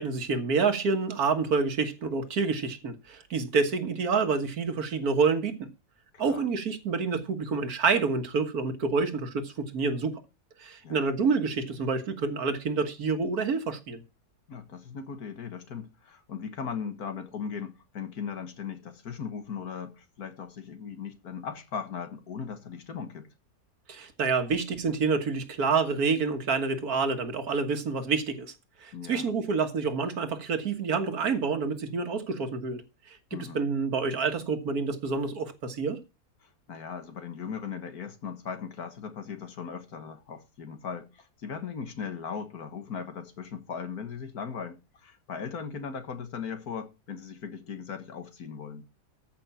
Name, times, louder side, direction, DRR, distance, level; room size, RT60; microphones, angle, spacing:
voice 1, 0.0-5.7 6.2-10.2 10.6-14.0 23.9-28.5 28.8-32.8 33.1-36.0, right 4 dB, 70° right, 1.9 m, -28 dB
voice 2, 6.1-6.5 10.8-11.0 14.5-23.3 28.9-29.3 33.3-33.7 36.4-48.8, left 6 dB, 70° left, 2.0 m, -38 dB
14.0 x 5.9 x 5.8 m
omnidirectional pair, 1.7 m